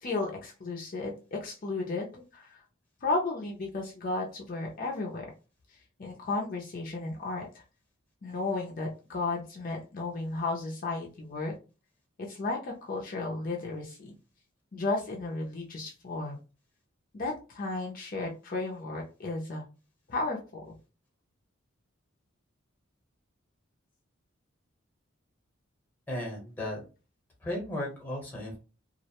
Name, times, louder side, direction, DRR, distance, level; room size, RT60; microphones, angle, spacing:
voice 1, 0.0-2.6 3.0-5.3 6.0-7.5 8.2-11.5 12.2-14.1 14.7-16.4 17.1-19.7 20.1-20.6, left 3 dB, 45° left, -1 dB, 0.4 m, -34 dB
voice 2, 26.1-26.8 27.4-28.6, left 1 dB, 10° left, -1 dB, 0.9 m, -35 dB
2.4 x 2.1 x 2.8 m, 0.33 s
head